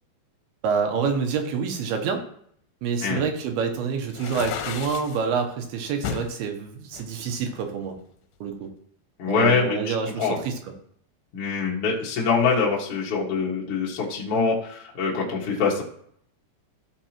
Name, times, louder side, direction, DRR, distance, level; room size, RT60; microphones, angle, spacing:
voice 1, 0.6-2.2 2.8-8.0 8.4-8.7 9.3-10.5, right 6 dB, 75° right, 5 dB, 2.6 m, -27 dB
sound 1, 4.1-5.2 6.0-6.3 6.9-8.0, left 8 dB, 80° left, 2.8 m, -33 dB
voice 2, 9.2-9.9 10.2-10.5 11.3-15.8, left 4 dB, 50° left, -4 dB, 1.8 m, -24 dB
15.5 x 6.0 x 3.0 m, 0.66 s
omnidirectional pair, 5.1 m